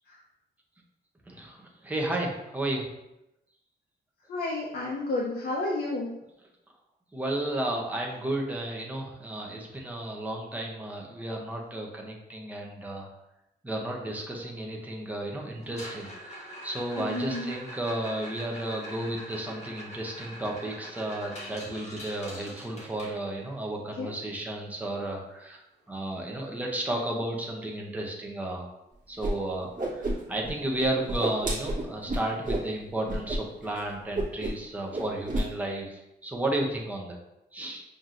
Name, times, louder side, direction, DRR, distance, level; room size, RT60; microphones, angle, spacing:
voice 1, 1.3-2.9 7.1-13.1 13.6-25.6 25.9-28.7 29.1-29.7 29.9-37.2 37.5-37.8, right 1 dB, 10° right, -1 dB, 0.6 m, -33 dB
voice 2, 4.3-6.1 17.0-17.5 24.0-24.1, left 2 dB, 55° left, -3 dB, 0.5 m, -31 dB
sound 1, 15.6-23.6 25.9-26.0 26.2-26.5 27.0-27.1 27.6-27.7 29.6-29.7, equal, 35° left, 1.1 m, -44 dB
Whoosh swoosh swish, 29.2-29.3 29.6-30.5 30.8-32.7 33.1-33.4 33.6-33.8 34.1-34.7 34.9-35.5, right 1 dB, 45° right, 1.0 m, -30 dB
5.7 x 2.6 x 2.4 m, 0.88 s
wide cardioid pair, 175°, 18 cm